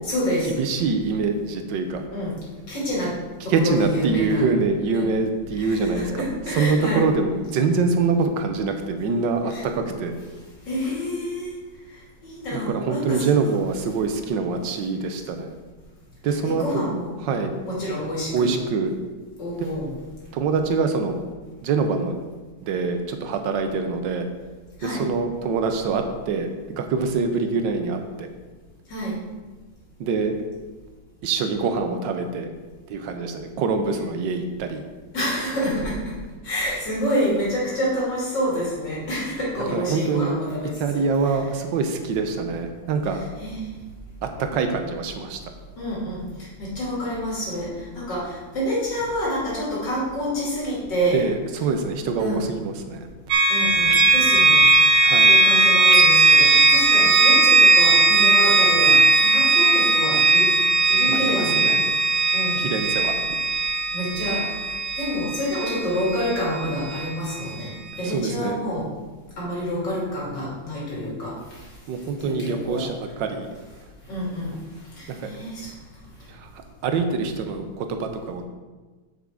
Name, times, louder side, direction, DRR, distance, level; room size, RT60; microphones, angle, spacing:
voice 1, 0.0-0.5 2.1-2.4 2.7-3.1 3.4-4.4 4.9-5.1 5.5-7.1 9.5-9.6 10.6-11.6 12.2-13.5 16.4-17.1 17.6-18.5 19.4-20.0 24.8-25.0 28.9-29.2 35.1-36.1 36.4-41.0 43.4-43.7 45.8-46.2 46.6-47.7 47.9-51.2 52.2-52.4 53.5-54.7 55.2-59.0 59.2-60.5 60.9-61.7 62.3-62.9 63.9-64.4 65.0-68.9 69.4-71.4 72.2-72.9 74.1-74.5 75.0-75.7, equal, 60° left, -6 dB, 3.4 m, -28 dB
voice 2, 0.6-2.0 3.5-10.1 12.5-15.5 16.2-16.9 17.2-17.5 18.3-19.0 20.3-21.2 21.6-22.2 22.6-24.3 24.8-28.3 30.0-30.4 31.2-32.5 32.9-34.8 39.7-40.4 40.8-43.2 44.2-45.4 51.1-53.1 55.0-55.4 61.1-61.8 62.6-63.1 68.0-68.6 71.9-73.5 75.1-75.3 76.3-76.5 76.8-78.4, right 4 dB, 70° right, 6 dB, 1.4 m, -25 dB
sound 1, 53.3-67.1, right 3 dB, 85° right, 1.7 m, -18 dB
7.4 x 7.3 x 3.7 m, 1.3 s
omnidirectional pair, 2.2 m